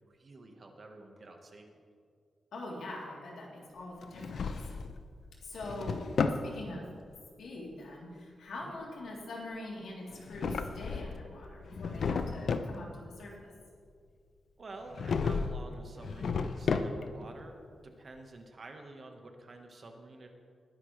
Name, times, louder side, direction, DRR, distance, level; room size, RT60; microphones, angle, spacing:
voice 1, 0.1-1.7 8.6-8.8 14.6-17.6 17.8-20.3, right 2 dB, 35° right, 3 dB, 1.3 m, -49 dB
voice 2, 2.5-4.6 5.4-6.0 6.4-6.9 7.4-13.5, left 2 dB, 80° left, -3 dB, 3.2 m, -43 dB
Drawer open or close, 4.0-5.0 5.4-6.5 10.1-11.3 11.6-12.8 14.9-15.6 16.0-17.2, left 5 dB, 60° left, 0.6 m, -33 dB
20.5 x 10.5 x 3.3 m, 2.1 s
wide cardioid pair, 160°, 0 cm